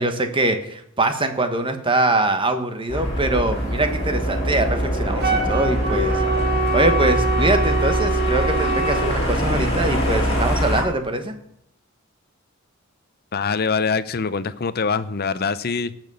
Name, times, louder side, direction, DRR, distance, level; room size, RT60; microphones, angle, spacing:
voice 1, 0.0-6.2 6.7-11.3, right 2 dB, 25° right, 1.4 m, -23 dB
sound 1, 2.9-10.8, equal, 30° left, 3.8 m, -23 dB
Wind instrument woodwind instrument, 5.2-9.1, right 3 dB, 50° right, 2.4 m, -24 dB
voice 2, 13.3-16.0, left 5 dB, 50° left, 0.7 m, -24 dB
18.0 x 6.0 x 6.9 m
head